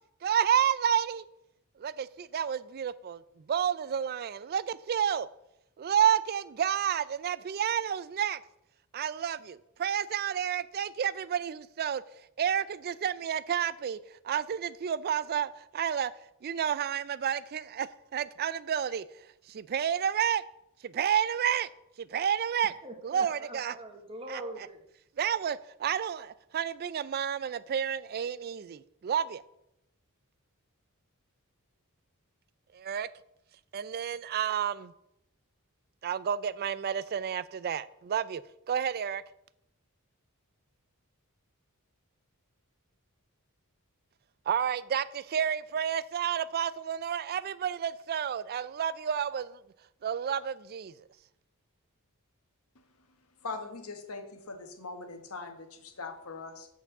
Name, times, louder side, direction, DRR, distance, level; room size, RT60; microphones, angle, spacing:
voice 1, 0.2-1.2 1.8-3.2 3.5-5.3 5.8-8.4 8.9-12.0 12.4-14.0 14.2-16.1 16.4-19.0 19.5-20.4 20.8-21.7 22.0-22.7 23.0-23.8 24.3-24.4 25.2-29.4 32.7-33.1 33.7-34.9 36.0-38.4 38.7-39.2 44.5-49.6 50.0-50.9, right 8 dB, 45° right, 0.3 m, -30 dB
voice 2, 22.6-24.8, right 1 dB, 25° right, 1.2 m, -43 dB
voice 3, 53.4-56.7, left 3 dB, 75° left, 1.2 m, -41 dB
8.4 x 4.6 x 6.6 m
head